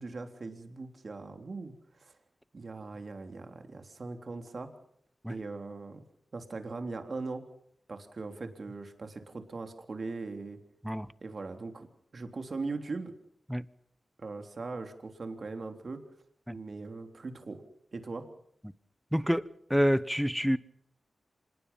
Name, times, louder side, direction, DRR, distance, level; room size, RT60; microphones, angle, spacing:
voice 1, 0.0-2.1 2.5-4.7 5.3-6.0 6.3-7.4 7.9-10.6 11.2-11.9 12.1-13.1 14.2-16.0 16.5-17.6 17.9-18.3, right 3 dB, 55° right, 3.5 m, -40 dB
voice 2, 19.1-19.4 19.7-20.6, equal, ahead, 1.1 m, -27 dB
26.0 x 20.5 x 5.7 m
cardioid pair, 65°, 0 cm